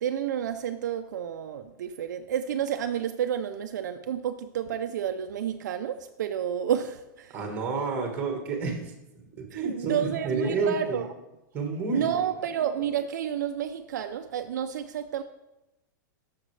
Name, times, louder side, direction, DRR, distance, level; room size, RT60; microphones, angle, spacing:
voice 1, 0.0-7.4 9.5-11.1 11.9-15.2, right 9 dB, 65° right, 7 dB, 0.5 m, -30 dB
voice 2, 7.3-8.9 9.3-11.0 11.5-12.1, right 4 dB, 15° right, 3 dB, 1.5 m, -29 dB
12.5 x 6.5 x 3.3 m, 0.96 s
supercardioid pair, 175°, 11 cm